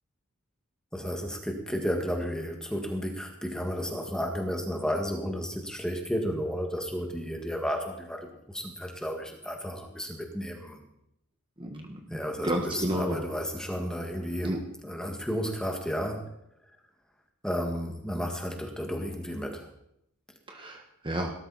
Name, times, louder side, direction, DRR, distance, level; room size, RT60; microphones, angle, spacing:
voice 1, 0.9-10.8 12.1-16.3 17.4-19.7, equal, 5° left, 2 dB, 1.9 m, -33 dB
voice 2, 11.6-12.0 12.4-13.2 14.4-14.6 20.5-21.3, right 1 dB, 20° right, 2 dB, 1.4 m, -31 dB
18.0 x 13.0 x 4.2 m, 0.77 s
head